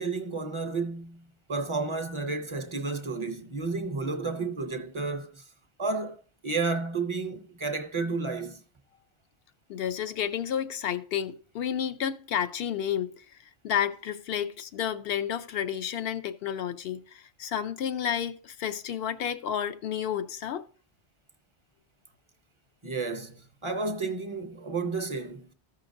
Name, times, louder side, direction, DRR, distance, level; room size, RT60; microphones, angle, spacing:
voice 1, 0.0-5.4 5.8-6.2 6.4-8.6 22.8-25.5, right 3 dB, 30° right, 0.6 m, -32 dB
voice 2, 9.7-13.2 13.6-20.6, left 9 dB, 65° left, 0.8 m, -31 dB
14.5 x 5.7 x 2.6 m
omnidirectional pair, 1.2 m